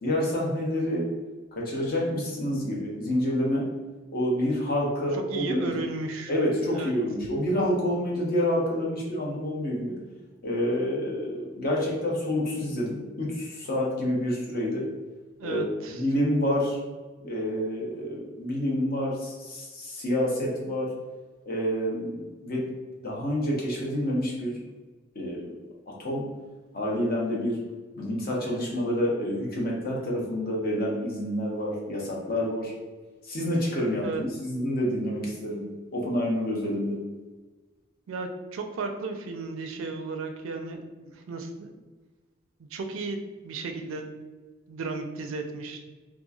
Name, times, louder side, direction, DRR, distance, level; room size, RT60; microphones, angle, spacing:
voice 1, 0.0-1.0 1.5-3.7 4.1-5.9 6.3-9.9 10.4-14.8 15.4-16.8 17.2-20.9 21.5-22.6 23.0-24.5 25.1-25.6 25.9-26.2 26.7-27.6 28.0-32.7 33.2-35.6 35.9-37.0, equal, 50° left, -2 dB, 0.7 m, -28 dB
voice 2, 5.1-6.3 6.7-6.9 15.4-16.0 34.0-34.2 38.1-40.8 41.1-41.7 42.6-43.2 43.4-44.1 44.7-45.8, right 3 dB, 80° right, 5 dB, 0.4 m, -34 dB
2.9 x 2.3 x 2.3 m, 1.3 s
head